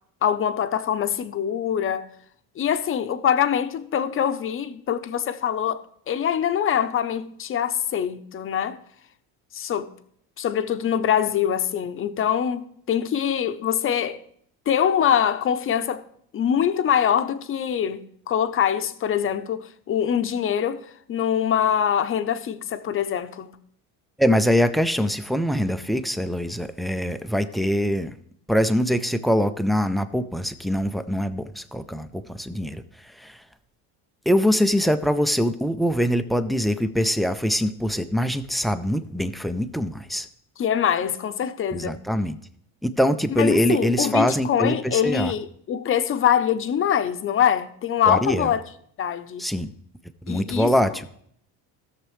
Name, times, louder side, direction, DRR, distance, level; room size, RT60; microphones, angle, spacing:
voice 1, 0.2-2.1 2.6-8.8 9.5-9.9 10.4-14.2 14.7-16.0 16.3-20.8 21.1-23.5 40.6-42.0 43.3-48.6 49.0-49.5 50.3-51.0, left 9 dB, 30° left, 0.7 m, -24 dB
voice 2, 24.2-28.1 28.5-33.4 34.3-40.3 41.7-42.4 42.8-45.3 48.1-48.5 49.4-49.7 50.2-51.1, equal, ahead, 0.3 m, -23 dB
16.5 x 6.7 x 3.1 m
cardioid pair, 120°, 40 cm